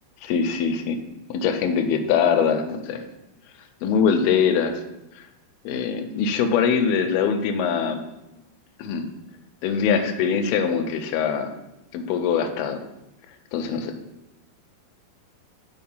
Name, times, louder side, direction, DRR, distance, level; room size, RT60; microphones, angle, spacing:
voice 1, 0.2-1.0 1.3-3.0 3.8-4.8 5.2-5.3 5.7-8.1 8.8-9.1 9.6-11.6 11.9-12.8 13.5-14.0, left 6 dB, 80° left, 6 dB, 2.3 m, -23 dB
5.7 x 4.6 x 5.4 m, 0.93 s
omnidirectional pair, 4.5 m